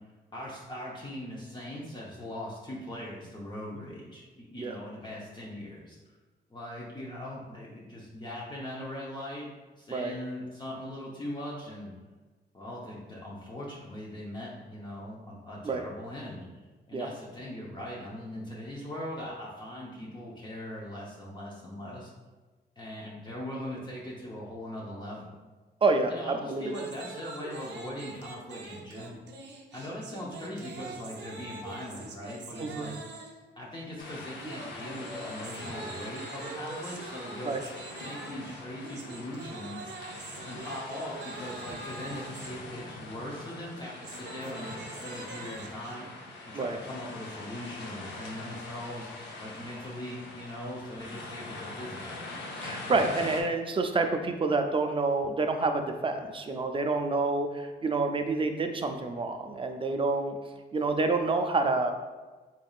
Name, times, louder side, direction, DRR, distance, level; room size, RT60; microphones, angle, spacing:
voice 1, 0.3-6.0 6.5-9.5 9.8-11.9 12.5-16.4 16.9-22.1 22.8-25.2 26.1-29.2 29.7-33.0 33.6-37.7 38.0-40.1 40.5-46.1 46.4-49.1 49.4-52.1, left 1 dB, 25° left, -5 dB, 0.7 m, -40 dB
voice 2, 25.8-26.7 32.6-32.9 37.4-37.6 46.5-46.8 52.6-60.4 60.7-61.9, right 3 dB, 30° right, 5 dB, 0.4 m, -28 dB
sound 1, 26.7-33.5 34.4-42.5 43.7-46.0, right 3 dB, 80° right, 0.5 m, -44 dB
sound 2, 34.0-53.4, left 2 dB, 90° left, 0.6 m, -43 dB
4.0 x 3.5 x 2.3 m, 1.3 s
cardioid pair, 90°, 18 cm